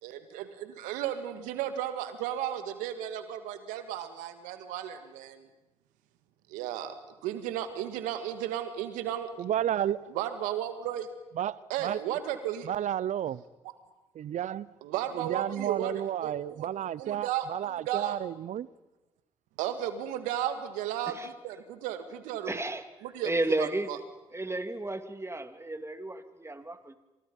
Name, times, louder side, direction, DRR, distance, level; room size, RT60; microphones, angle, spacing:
voice 1, 0.0-5.5 6.5-6.9 7.2-9.3 10.1-11.1 11.7-12.7 14.8-16.7 17.0-18.2 19.6-22.6 23.0-23.3 23.6-24.0, right 11 dB, 85° right, 1.9 m, -34 dB
voice 2, 9.4-10.1 11.4-12.0 12.6-13.4 14.1-14.7 15.1-18.7, right 11 dB, 70° right, 0.8 m, -32 dB
voice 3, 22.5-22.8 23.2-24.0 24.3-27.0, right 2 dB, 20° right, 2.8 m, -33 dB
27.5 x 26.5 x 5.5 m
hypercardioid pair, 40°, 13 cm